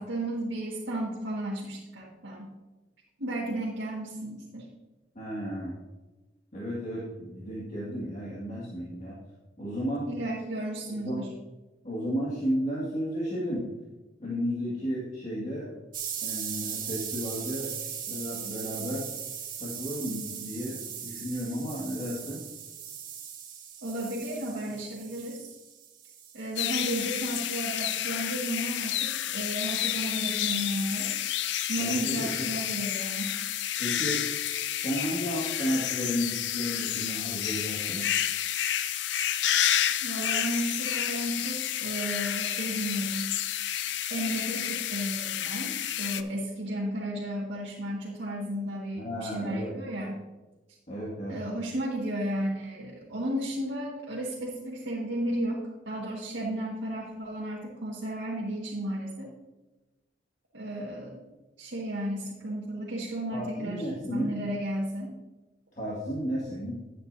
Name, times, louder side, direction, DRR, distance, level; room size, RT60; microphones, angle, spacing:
voice 1, 0.0-2.5 3.2-4.7 10.1-11.3 23.8-25.5 26.3-31.1 31.7-33.4 40.0-43.3 44.1-50.2 51.3-59.3 60.5-61.3 61.6-65.1, right 1 dB, 85° right, -6 dB, 1.8 m, -33 dB
voice 2, 5.2-5.8 6.5-9.2 9.6-10.1 11.0-11.2 11.8-13.7 14.2-15.7 16.2-17.7 18.1-19.1 19.6-22.4 31.8-32.5 33.8-34.3 34.7-38.0 49.0-49.7 50.9-51.4 63.3-64.4 65.8-66.8, equal, 40° left, -6 dB, 2.0 m, -33 dB
sound 1, 15.9-26.6, right 8 dB, 50° right, 1.5 m, -39 dB
sound 2, 26.6-46.2, left 11 dB, 70° left, 0.5 m, -30 dB
11.5 x 8.7 x 2.7 m, 1.1 s
head